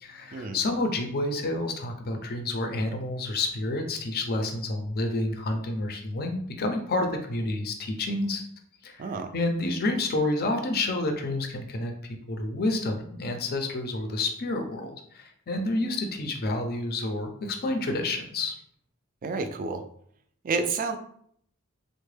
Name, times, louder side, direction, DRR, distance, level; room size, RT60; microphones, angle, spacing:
voice 1, 0.0-8.4 8.8-11.9 12.3-18.5, left 2 dB, 45° left, 4 dB, 0.5 m, -29 dB
voice 2, 19.2-19.8 20.4-21.0, right 4 dB, 40° right, 8 dB, 0.3 m, -29 dB
3.5 x 2.1 x 3.2 m, 0.66 s
head